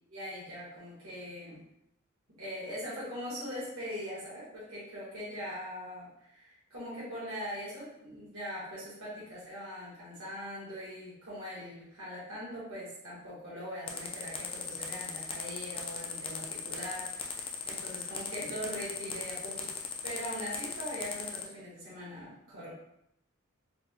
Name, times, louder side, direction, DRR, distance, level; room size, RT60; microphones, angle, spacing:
voice 1, 0.1-1.6 2.4-22.7, equal, 75° right, -8 dB, 1.2 m, -41 dB
sound 1, 13.9-21.4, left 6 dB, 25° left, 0.3 m, -38 dB
4.2 x 2.1 x 2.7 m, 0.76 s
head